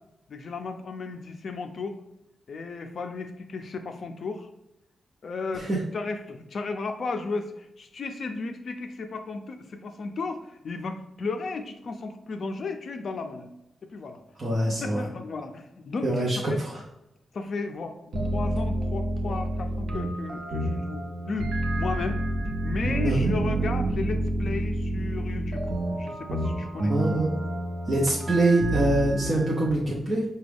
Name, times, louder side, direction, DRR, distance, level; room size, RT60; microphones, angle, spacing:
voice 1, 0.3-2.0 2.5-4.5 5.2-13.5 13.9-14.2 14.8-16.6 17.3-25.6 25.9-27.0, left 3 dB, 55° left, 6 dB, 0.4 m, -34 dB
voice 2, 14.4-15.1 16.0-16.8 23.0-23.3 26.8-27.3 27.9-30.2, right 2 dB, 30° right, -5 dB, 0.7 m, -24 dB
sound 1, 18.1-29.7, right 1 dB, 75° right, 0.7 m, -28 dB
5.9 x 2.2 x 3.4 m, 0.87 s
wide cardioid pair, 145°, 0 cm